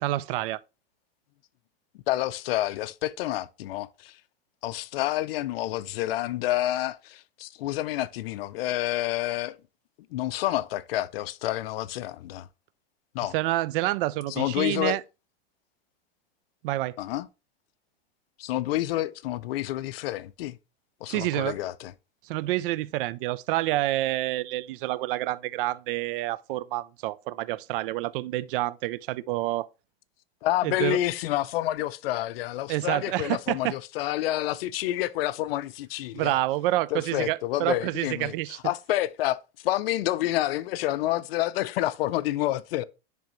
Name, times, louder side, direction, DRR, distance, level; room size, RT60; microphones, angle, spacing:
voice 1, 0.0-0.6 13.3-15.0 16.6-16.9 21.1-21.5 22.2-29.7 30.6-31.0 32.7-33.8 36.1-38.6, right 16 dB, 65° right, 0.5 m, -28 dB
voice 2, 2.1-4.2 4.6-9.6 10.1-12.5 13.1-13.3 14.3-15.0 17.0-17.3 18.4-20.6 21.0-21.9 30.4-36.4 36.9-38.4 38.6-39.4 39.6-42.8, left 15 dB, 80° left, 0.5 m, -28 dB
10.5 x 3.5 x 3.0 m
supercardioid pair, 140°, 29 cm